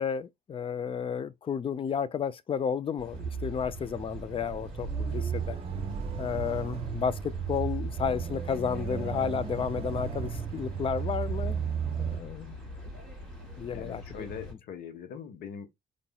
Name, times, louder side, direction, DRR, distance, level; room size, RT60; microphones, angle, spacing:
voice 1, 0.0-5.6 6.2-11.6 12.0-12.6 13.6-14.3, left 7 dB, 30° left, 0.5 m, -32 dB
sound 1, 3.0-14.5, left 1 dB, 5° left, 3.2 m, -46 dB
sound 2, 3.1-12.2, right 6 dB, 35° right, 1.2 m, -34 dB
voice 2, 8.9-9.2 13.7-15.7, left 7 dB, 65° left, 1.4 m, -42 dB
5.2 x 4.1 x 2.3 m
cardioid pair, 110°, 17 cm